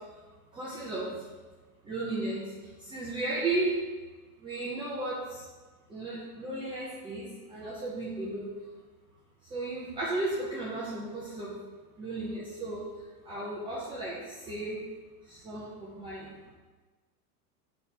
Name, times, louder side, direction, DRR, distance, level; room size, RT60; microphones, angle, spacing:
voice 1, 0.5-1.2 1.8-2.5 2.8-3.8 4.4-5.4 5.9-8.5 9.5-11.6 12.0-12.8 13.2-14.8 15.2-16.4, right 2 dB, 10° right, -7 dB, 0.6 m, -34 dB
5.7 x 4.3 x 4.5 m, 1.3 s
supercardioid pair, 140°, 47 cm